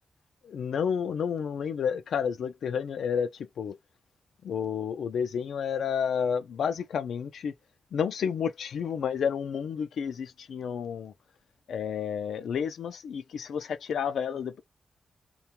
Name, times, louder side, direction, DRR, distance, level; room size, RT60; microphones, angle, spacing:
voice 1, 0.4-3.8 4.4-7.5 7.9-11.1 11.7-14.6, left 7 dB, 85° left, 0.4 m, -30 dB
3.7 x 2.3 x 2.9 m
wide cardioid pair, 135°, 0 cm